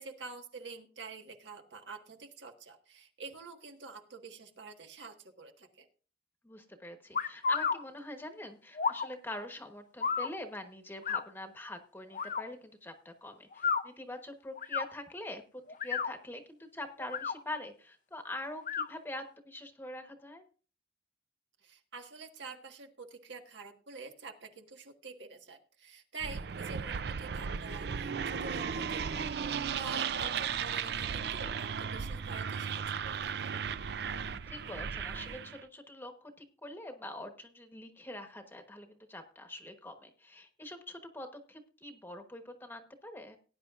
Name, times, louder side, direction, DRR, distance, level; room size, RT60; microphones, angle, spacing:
voice 1, 0.0-5.9 21.6-33.5, right 4 dB, 75° right, 5 dB, 1.5 m, -47 dB
voice 2, 6.4-15.4 15.8-20.4 34.0-43.4, left 1 dB, 10° left, 6 dB, 1.1 m, -44 dB
sound 1, 7.1-7.8 8.8-9.1 10.0-10.3 11.0-11.2 12.1-12.4 13.5-13.8 14.6-14.9 15.7-16.1 17.0-17.4 18.6-18.9, left 5 dB, 45° left, 0.5 m, -31 dB
sound 2, 26.2-35.6, right 6 dB, 60° right, 0.4 m, -35 dB
18.5 x 9.7 x 2.4 m, 0.37 s
head